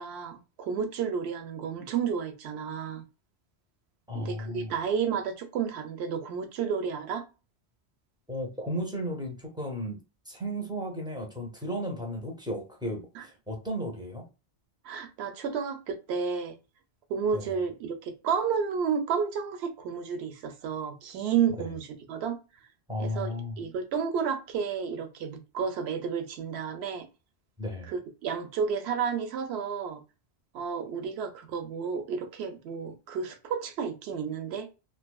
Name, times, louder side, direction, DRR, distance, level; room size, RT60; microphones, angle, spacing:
voice 1, 0.0-3.0 4.1-7.2 13.2-13.3 14.8-16.6 17.1-22.4 23.0-27.1 27.9-30.0 30.5-34.7, right 6 dB, 75° right, 0.8 m, -31 dB
voice 2, 4.1-4.7 8.3-10.0 10.3-14.2 17.3-17.6 21.6-21.7 22.9-23.6 27.6-27.9, equal, 5° right, 0.5 m, -34 dB
2.5 x 2.5 x 2.3 m
omnidirectional pair, 1.1 m